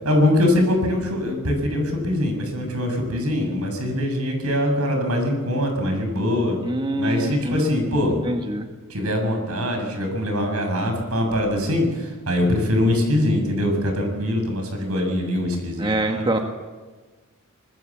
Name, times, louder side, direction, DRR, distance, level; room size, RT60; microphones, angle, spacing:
voice 1, 0.0-6.6 7.0-8.2 8.9-16.3, left 1 dB, 80° right, 4 dB, 7.3 m, -23 dB
voice 2, 6.7-7.7 8.2-8.7 15.8-16.4, right 1 dB, 25° right, 4 dB, 1.6 m, -24 dB
26.0 x 20.5 x 7.5 m, 1.3 s
head